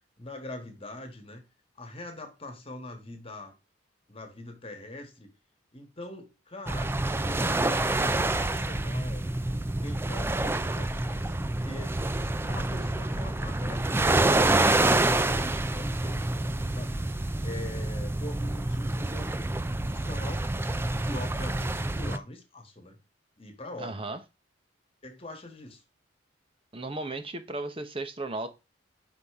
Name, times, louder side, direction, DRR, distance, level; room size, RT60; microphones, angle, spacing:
voice 1, 0.2-1.4 1.8-3.6 4.1-5.3 5.7-6.9 7.1-9.3 9.8-12.0 12.4-14.7 15.0-16.2 16.7-17.0 17.4-20.5 21.0-23.0 23.4-24.1 25.0-25.8, left 1 dB, 30° left, 1.4 m, -43 dB
sound 1, 6.7-22.2, right 2 dB, 10° right, 0.3 m, -27 dB
voice 2, 23.8-24.2 26.7-28.5, right 2 dB, 30° right, 0.9 m, -35 dB
5.6 x 5.0 x 3.6 m
head